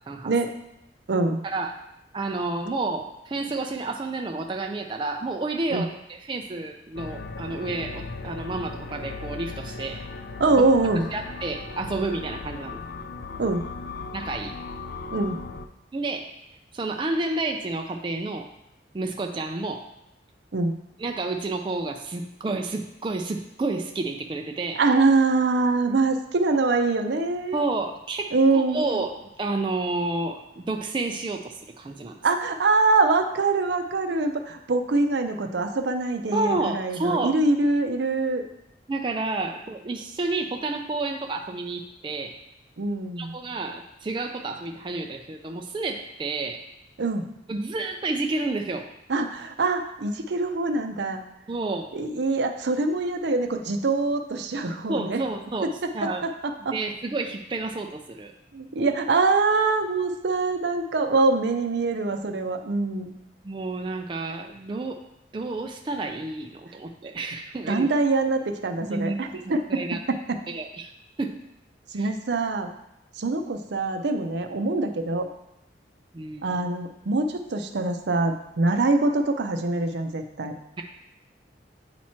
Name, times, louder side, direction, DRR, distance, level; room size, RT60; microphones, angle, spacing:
voice 1, 1.1-1.4 5.7-5.8 10.4-11.0 13.4-13.6 15.1-15.4 20.5-20.7 24.8-27.7 28.3-29.0 32.2-38.4 42.8-43.3 47.0-47.3 49.1-51.2 51.9-55.2 55.8-55.9 56.2-56.3 56.7-56.8 58.5-63.1 67.7-69.8 70.1-70.4 71.9-72.7 73.2-75.3 76.4-80.5, right 3 dB, 75° right, 5 dB, 0.6 m, -24 dB
voice 2, 2.1-10.0 11.1-12.8 14.1-14.6 15.9-16.3 16.7-18.5 18.9-19.9 21.0-24.8 27.5-32.2 36.3-37.4 38.9-42.4 43.2-46.6 47.5-48.9 51.5-51.9 54.9-56.3 56.7-58.3 63.4-65.0 65.3-67.9 68.9-69.4 69.7-70.0 70.5-70.9 71.2-71.4 71.9-72.1 76.1-76.6, right 2 dB, 25° right, 3 dB, 0.3 m, -30 dB
sound 1, 7.0-15.7, left 4 dB, 55° left, 0.4 m, -37 dB
8.3 x 3.0 x 4.3 m, 0.88 s
head